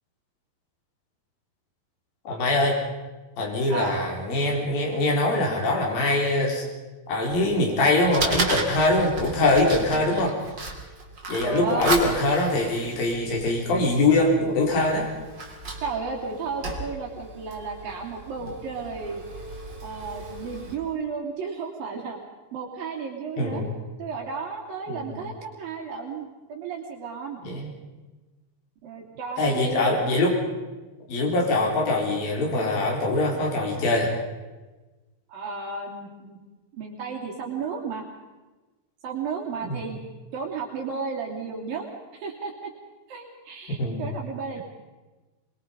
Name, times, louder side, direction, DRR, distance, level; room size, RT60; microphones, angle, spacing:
voice 1, 2.3-2.8 3.4-6.6 7.1-10.4 11.3-15.1 23.4-23.7 24.9-25.1 27.4-27.7 29.4-30.4 31.1-34.1 43.8-44.1, left 2 dB, 70° left, -1 dB, 5.7 m, -23 dB
Fire, 7.3-20.7, right 2 dB, 30° right, 3.4 m, -34 dB
voice 2, 11.4-12.1 15.8-19.4 19.8-22.2 22.5-23.6 24.0-27.4 28.8-30.0 35.3-36.4 36.7-38.1 39.0-40.0 40.3-42.7 43.1-44.6, right 5 dB, 70° right, 0 dB, 4.7 m, -33 dB
24.5 x 23.5 x 5.2 m, 1.2 s
omnidirectional pair, 4.3 m